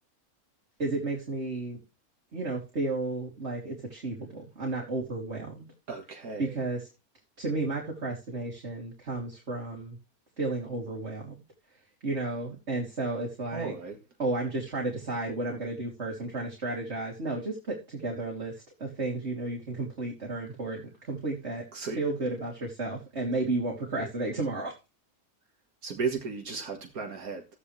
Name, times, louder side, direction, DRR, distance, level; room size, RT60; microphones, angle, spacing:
voice 1, 0.8-1.8 2.3-5.7 6.4-6.9 7.4-10.0 10.4-11.3 12.0-13.7 14.2-21.6 22.0-24.7, right 2 dB, 45° right, 3.4 m, -33 dB
voice 2, 5.9-6.7 13.5-14.0 21.7-22.0 24.0-24.1 25.8-27.5, right 5 dB, 75° right, 2.2 m, -35 dB
15.0 x 9.8 x 3.3 m
omnidirectional pair, 1.5 m